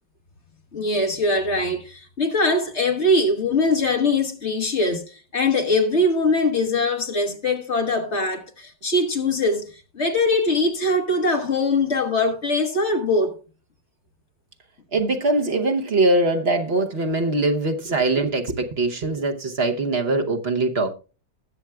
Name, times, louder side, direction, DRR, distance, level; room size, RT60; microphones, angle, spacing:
voice 1, 0.7-13.4, left 2 dB, 40° left, 1.7 m, -22 dB
voice 2, 14.9-20.9, right 2 dB, 45° right, 0.9 m, -22 dB
20.0 x 7.1 x 2.3 m
omnidirectional pair, 1.9 m